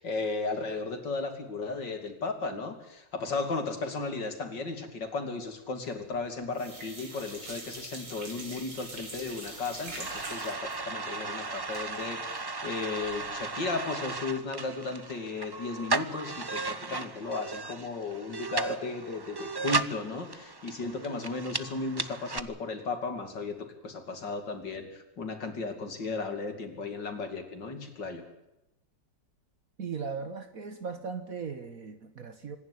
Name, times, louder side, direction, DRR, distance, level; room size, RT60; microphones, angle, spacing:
voice 1, 0.0-28.2, left 3 dB, 75° left, 6 dB, 3.5 m, -35 dB
sound 1, 5.9-6.3 6.5-13.4 13.7-13.8 14.1-14.2, right 2 dB, 75° right, 5.1 m, -44 dB
sound 2, 9.4-22.4, right 3 dB, 35° right, 0.3 m, -36 dB
voice 2, 29.8-32.6, right 5 dB, 50° right, 9 dB, 1.6 m, -38 dB
25.5 x 11.0 x 9.7 m, 0.91 s
omnidirectional pair, 1.9 m